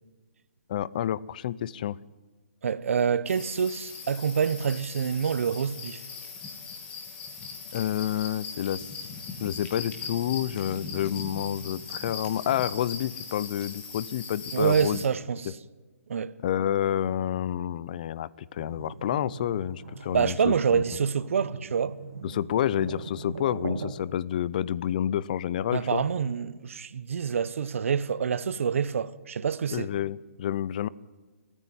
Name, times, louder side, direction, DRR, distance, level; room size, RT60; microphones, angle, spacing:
voice 1, 0.7-2.0 7.7-9.0 9.4-15.0 16.4-20.8 22.2-26.0 29.7-30.9, left 10 dB, 35° left, 0.5 m, -29 dB
voice 2, 2.6-6.0 14.5-15.6 16.1-16.3 20.1-21.9 25.7-29.9, right 7 dB, 60° right, 1.0 m, -27 dB
sound 1, 3.3-15.1, left 5 dB, 15° left, 2.3 m, -40 dB
sound 2, 18.6-23.9, right 4 dB, 80° right, 2.5 m, -40 dB
28.0 x 10.0 x 9.4 m
hypercardioid pair, 165°, 8 cm